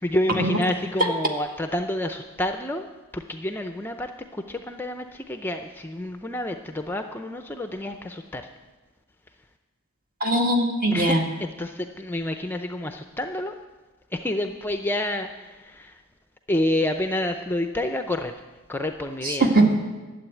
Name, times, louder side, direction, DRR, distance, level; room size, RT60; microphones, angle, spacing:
voice 1, 0.0-2.9 3.1-8.4 10.9-13.5 14.1-15.9 16.5-18.3 18.7-19.5, left 1 dB, 10° left, 6 dB, 0.5 m, -29 dB
voice 2, 10.2-11.2 19.2-19.7, right 2 dB, 40° right, 2 dB, 1.8 m, -20 dB
12.0 x 7.7 x 9.3 m, 1.2 s
head